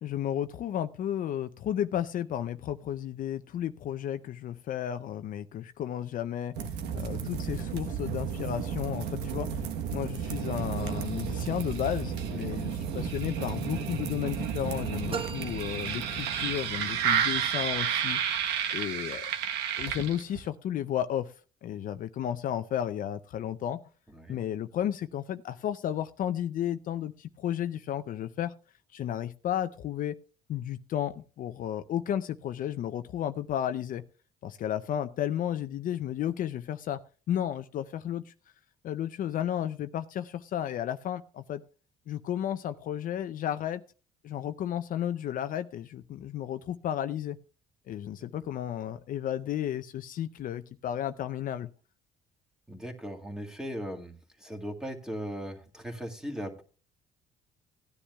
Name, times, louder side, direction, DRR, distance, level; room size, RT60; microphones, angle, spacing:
voice 1, 0.0-6.5 6.9-9.6 9.9-18.2 18.7-19.3 19.8-21.3 21.6-23.8 24.3-28.5 28.9-30.2 30.5-34.0 34.4-37.0 37.3-38.3 38.8-41.6 42.1-43.8 44.2-47.4 47.9-51.7, left 10 dB, 55° left, 10 dB, 0.5 m, -33 dB
sound 1, 6.6-20.5, right 8 dB, 90° right, 1.1 m, -32 dB
sound 2, 15.1-16.8, right 6 dB, 35° right, 0.8 m, -40 dB
voice 2, 52.7-54.1 54.4-56.6, equal, 5° right, 2 dB, 1.8 m, -38 dB
16.5 x 10.0 x 2.3 m, 0.36 s
cardioid pair, 110°, 17 cm